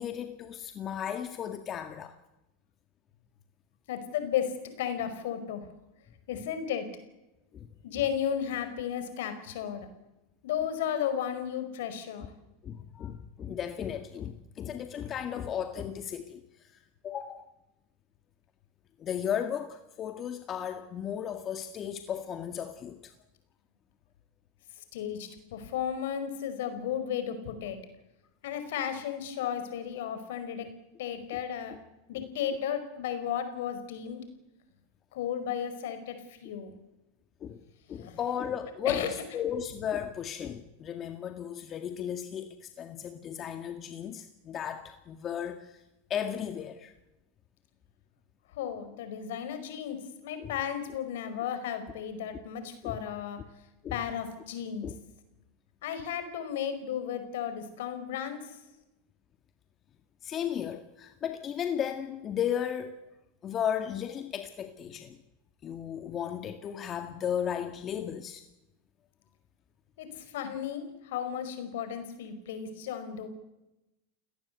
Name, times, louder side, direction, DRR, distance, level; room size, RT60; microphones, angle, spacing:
voice 1, 0.0-2.2 7.5-7.7 12.6-16.7 17.0-17.5 19.0-23.1 31.3-31.4 37.4-45.8 46.1-46.9 50.4-50.5 52.8-53.0 53.8-54.0 54.8-54.9 60.2-63.0 63.4-65.2 65.6-68.4, left 9 dB, 35° left, 7 dB, 1.9 m, -35 dB
voice 2, 3.9-4.5 4.8-5.6 6.3-6.9 7.8-9.9 10.4-12.3 24.9-27.8 28.4-30.7 31.0-31.8 32.1-34.2 35.1-36.1 36.4-36.7 37.9-38.2 38.8-39.1 48.5-53.4 53.9-54.8 55.8-58.4 70.0-73.3, left 9 dB, 70° left, 9 dB, 5.1 m, -34 dB
30.0 x 17.5 x 8.2 m, 0.98 s
hypercardioid pair, 95°, 0 cm